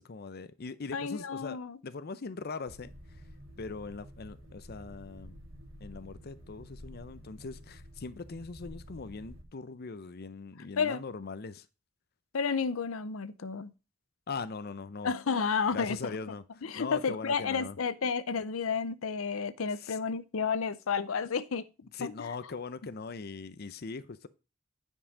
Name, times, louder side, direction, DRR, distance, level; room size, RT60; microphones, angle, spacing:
voice 1, 0.0-1.6 1.8-3.2 3.6-5.4 5.8-11.7 14.3-15.1 15.7-17.8 19.8-20.0 21.9-24.3, left 4 dB, 50° left, 0.6 m, -41 dB
voice 2, 0.9-1.8 10.8-11.0 12.3-13.7 15.0-16.1 16.6-21.6 22.0-22.1, left 5 dB, 85° left, 0.6 m, -31 dB
sound 1, 2.7-9.4, equal, 65° right, 2.9 m, -50 dB
9.8 x 5.5 x 5.0 m
head